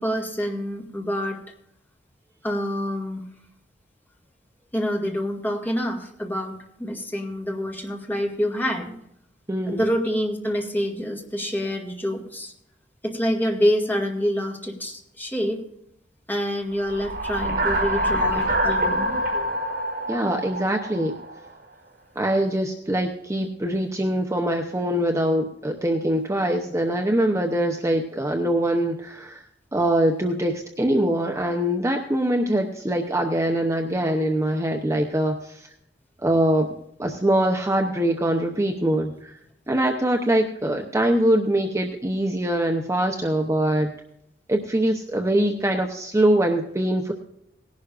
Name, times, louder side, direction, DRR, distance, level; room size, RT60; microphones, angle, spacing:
voice 1, 0.0-1.4 2.4-3.2 4.7-8.9 9.7-12.5 13.0-15.6 16.3-19.2, equal, 10° left, 0 dB, 2.0 m, -26 dB
voice 2, 9.5-9.8 20.1-21.1 22.2-29.4 29.7-35.7 36.2-36.7 37.0-39.3 39.7-43.9 44.5-47.1, right 1 dB, 15° right, 2 dB, 0.8 m, -23 dB
sound 1, 16.8-21.5, right 1 dB, 60° right, 4.5 m, -25 dB
18.5 x 11.5 x 2.5 m, 0.78 s
head